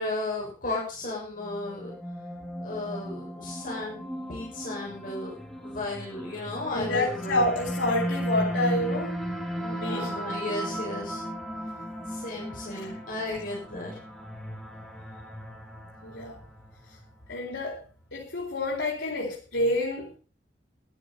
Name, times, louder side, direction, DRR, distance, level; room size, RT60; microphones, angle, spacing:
voice 1, 0.0-1.9 2.6-5.3 5.6-7.5 9.7-11.2 12.1-14.0, left 2 dB, 50° left, -3 dB, 6.9 m, -34 dB
sound 1, 1.4-16.7, equal, 5° left, 2.7 m, -36 dB
voice 2, 6.7-9.2 9.6-10.1 12.7-12.9 16.0-16.3 17.3-17.8 18.1-20.2, left 1 dB, 90° left, -4 dB, 4.7 m, -28 dB
14.0 x 12.0 x 5.6 m, 0.38 s
head